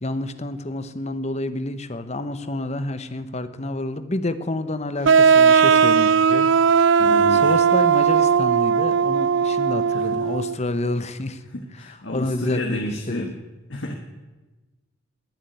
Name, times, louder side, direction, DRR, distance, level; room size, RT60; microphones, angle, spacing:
voice 1, 0.0-6.5 6.8-11.4 11.8-13.3, left 2 dB, 35° left, 12 dB, 1.0 m, -29 dB
sound 1, 5.0-10.6, right 6 dB, 65° right, 0.4 m, -17 dB
voice 2, 7.0-7.6 9.9-10.2 11.5-13.3 13.7-13.9, left 1 dB, 65° left, 3 dB, 1.7 m, -31 dB
21.0 x 7.4 x 9.3 m, 1.2 s
head